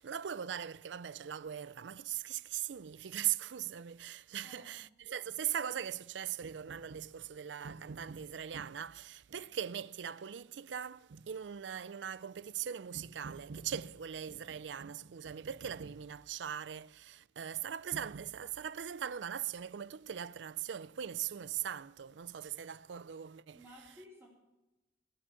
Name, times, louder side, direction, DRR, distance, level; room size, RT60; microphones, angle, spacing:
voice 1, 0.0-23.6, right 9 dB, 90° right, 0.5 m, -40 dB
voice 2, 4.4-4.8 23.5-24.3, left 1 dB, 10° right, 4.2 m, -55 dB
18.5 x 7.1 x 9.9 m
head